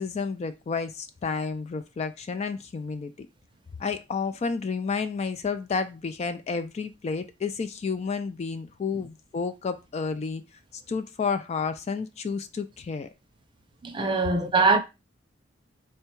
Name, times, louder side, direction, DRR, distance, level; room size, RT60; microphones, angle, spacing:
voice 1, 0.0-3.3 3.8-10.4 10.7-13.1, left 5 dB, 35° left, 0.3 m, -31 dB
voice 2, 13.8-14.8, right 3 dB, 25° right, 0.5 m, -22 dB
3.6 x 2.2 x 4.4 m
head